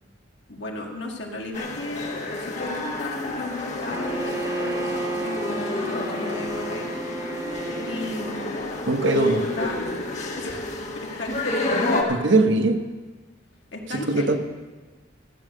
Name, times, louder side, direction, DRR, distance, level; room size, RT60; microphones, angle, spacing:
voice 1, 0.5-6.9 7.2-7.6 7.9-8.6 9.1-9.8 10.4-11.9 13.7-14.4, left 2 dB, 65° left, 1 dB, 1.9 m, -35 dB
sound 1, 1.5-12.0, left 2 dB, 40° left, 1.6 m, -30 dB
Bowed string instrument, 3.9-8.7, right 2 dB, 15° right, 0.3 m, -32 dB
voice 2, 8.9-9.4 12.1-12.8 13.9-14.4, right 2 dB, 70° right, 6 dB, 1.2 m, -20 dB
14.5 x 8.6 x 6.6 m, 1.3 s
head